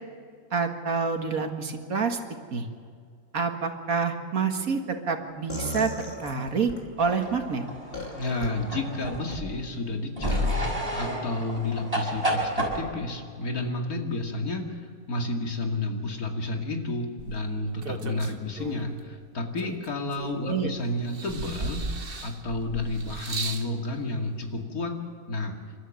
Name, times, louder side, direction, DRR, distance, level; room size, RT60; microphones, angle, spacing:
voice 1, 0.5-2.2 2.5-2.7 3.3-6.7 7.0-7.6 20.4-20.7, right 5 dB, 75° right, 5 dB, 2.2 m, -27 dB
sound 1, 5.5-6.8 7.9-8.5 9.0-9.4 10.3-10.5, left 1 dB, 40° left, 3.0 m, -36 dB
sound 2, 7.0-9.6 10.2-12.8, equal, 25° right, 6.0 m, -30 dB
voice 2, 8.2-21.8 22.2-24.9 25.3-25.6, left 2 dB, 90° left, 2 dB, 2.8 m, -31 dB
sound 3, 17.2-19.0 19.6-20.6 21.1-23.7 24.6-24.7, right 3 dB, 40° right, 1.4 m, -36 dB
29.0 x 13.0 x 7.8 m, 2.2 s
omnidirectional pair, 1.5 m